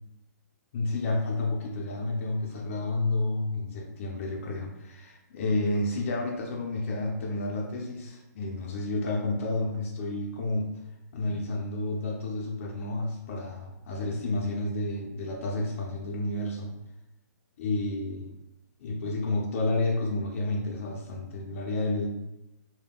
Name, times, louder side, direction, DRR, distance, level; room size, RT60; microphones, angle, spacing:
voice 1, 0.7-10.7 11.1-16.8 17.6-18.3 18.8-22.1, left 2 dB, 45° left, -1 dB, 0.5 m, -30 dB
3.5 x 2.2 x 2.3 m, 0.92 s
hypercardioid pair, 150°, 10 cm